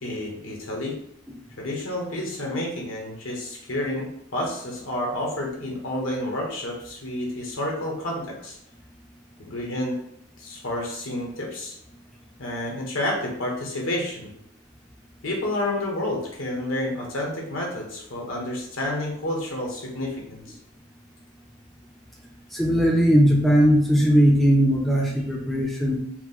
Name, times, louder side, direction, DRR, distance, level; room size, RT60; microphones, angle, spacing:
voice 1, 0.0-1.0 1.6-8.6 9.4-10.0 10.4-11.8 12.4-14.3 15.2-20.6, left 1 dB, 85° left, -1 dB, 1.2 m, -30 dB
voice 2, 22.5-26.0, equal, ahead, -2 dB, 0.5 m, -19 dB
4.5 x 2.1 x 4.1 m, 0.72 s
head